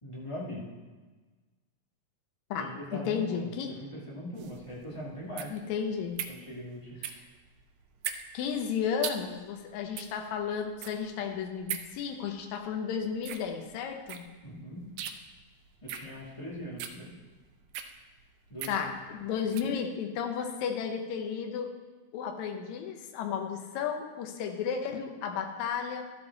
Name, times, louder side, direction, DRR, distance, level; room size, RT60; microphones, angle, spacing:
voice 1, 0.0-0.7 2.6-5.6 6.3-7.0 14.4-14.9 15.8-17.2 18.5-18.7, equal, 20° left, -6 dB, 0.7 m, -41 dB
voice 2, 2.5-3.7 5.5-6.2 8.3-14.3 18.7-21.7 22.1-26.1, left 7 dB, 70° left, 3 dB, 2.0 m, -33 dB
sound 1, 4.3-19.8, right 10 dB, 85° right, 1.6 m, -42 dB
12.5 x 7.0 x 4.0 m, 1.3 s
omnidirectional pair, 3.9 m